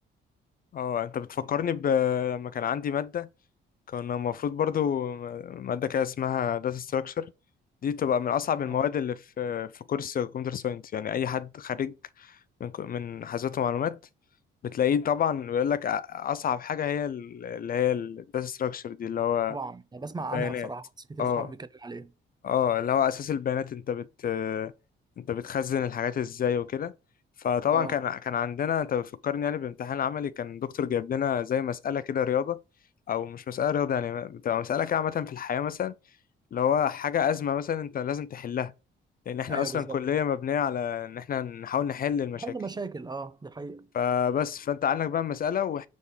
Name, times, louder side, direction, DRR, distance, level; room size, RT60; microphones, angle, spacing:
voice 1, 0.7-3.3 3.9-7.3 7.8-12.4 12.6-14.0 14.6-19.6 20.3-20.7 21.2-21.5 22.4-24.7 25.2-26.9 27.4-32.6 33.1-35.9 36.5-38.7 39.3-42.4 43.9-45.9, left 8 dB, 45° left, 0.5 m, -28 dB
voice 2, 19.5-22.1 27.7-28.0 39.5-40.0 42.3-43.9, right 3 dB, 20° right, 0.5 m, -37 dB
6.3 x 3.5 x 5.6 m
cardioid pair, 90°, 20 cm